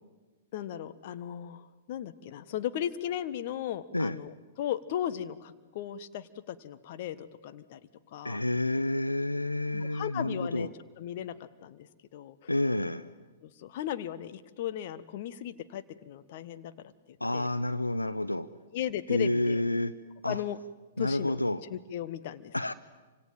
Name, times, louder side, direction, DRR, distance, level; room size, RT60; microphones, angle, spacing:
voice 1, 0.5-7.8 8.1-8.4 9.7-10.7 11.0-11.9 12.1-12.5 13.4-17.5 18.7-19.6 20.3-20.6 21.0-22.7, left 11 dB, 45° left, 1.4 m, -36 dB
voice 2, 8.2-10.7 12.5-13.1 17.2-18.5 19.1-19.9 20.2-20.4 21.0-21.6 22.5-22.7, left 1 dB, 90° left, 0.8 m, -29 dB
28.5 x 25.5 x 7.5 m
figure-of-eight pair, 110°, 0 cm